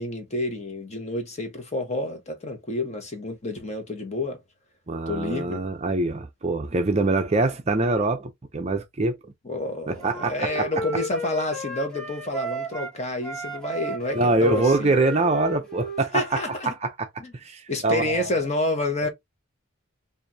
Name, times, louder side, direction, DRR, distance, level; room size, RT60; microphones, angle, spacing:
voice 1, 0.0-4.4 5.1-5.6 9.4-14.9 16.1-16.7 17.2-17.3 17.7-19.1, left 2 dB, 30° left, 1.0 m, -29 dB
voice 2, 4.9-9.3 9.9-10.7 14.1-17.1 17.3-18.3, right 3 dB, 30° right, 0.5 m, -24 dB
Wind instrument woodwind instrument, 10.0-12.9 13.2-16.6, equal, 5° left, 1.0 m, -33 dB
4.6 x 2.6 x 2.7 m
head